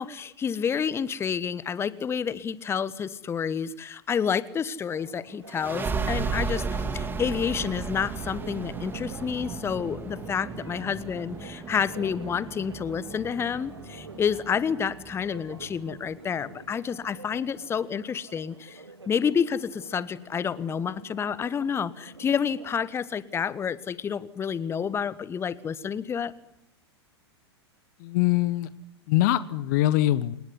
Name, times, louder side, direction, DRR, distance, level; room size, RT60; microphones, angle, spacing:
voice 1, 0.0-26.3, left 7 dB, 20° left, 18 dB, 1.2 m, -29 dB
Church bell, 4.9-23.2, right 3 dB, 80° right, 2.4 m, -48 dB
sound 1, 5.5-16.7, right 4 dB, 15° right, 2.4 m, -35 dB
voice 2, 28.0-28.7 29.1-30.4, left 15 dB, 45° left, 17 dB, 1.0 m, -23 dB
28.0 x 19.0 x 9.9 m, 0.83 s
figure-of-eight pair, 95°, 14 cm